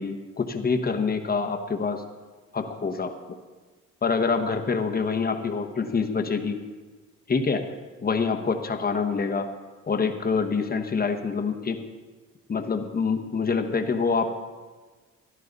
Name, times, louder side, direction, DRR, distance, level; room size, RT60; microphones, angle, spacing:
voice 1, 0.0-2.0 2.5-3.2 4.0-6.6 7.3-7.6 8.0-9.5 9.9-11.8 12.5-14.4, left 5 dB, 30° left, 6 dB, 1.2 m, -26 dB
14.5 x 11.5 x 4.0 m, 1.4 s
cardioid pair, 90°, 30 cm